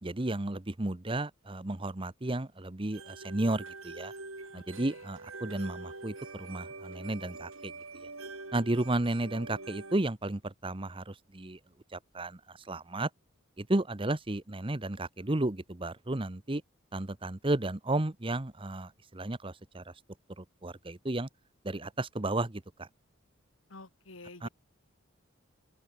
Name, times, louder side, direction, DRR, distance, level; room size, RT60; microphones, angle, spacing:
voice 1, 0.0-4.1 4.5-7.7 8.5-11.6 11.9-12.4 12.7-13.1 13.6-16.6 16.9-19.8 20.4-21.3 21.6-22.9 24.4-24.5, right 2 dB, 25° right, 1.0 m, -33 dB
sound 1, 2.9-10.0, right 3 dB, 80° right, 7.1 m, -45 dB
voice 2, 4.5-5.0 23.7-24.5, left 2 dB, 70° left, 2.6 m, -50 dB
head